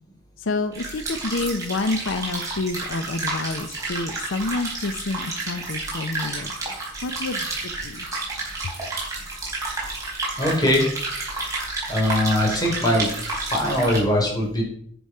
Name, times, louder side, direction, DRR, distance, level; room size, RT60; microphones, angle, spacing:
voice 1, 0.4-6.5 7.0-7.5 7.8-8.1, left 3 dB, 80° left, 9 dB, 0.6 m, -28 dB
sound 1, 0.7-14.0, right 3 dB, 15° right, 4.1 m, -30 dB
voice 2, 10.4-10.9 11.9-14.6, left 1 dB, 20° left, -1 dB, 3.5 m, -21 dB
10.0 x 6.2 x 5.4 m, 0.65 s
head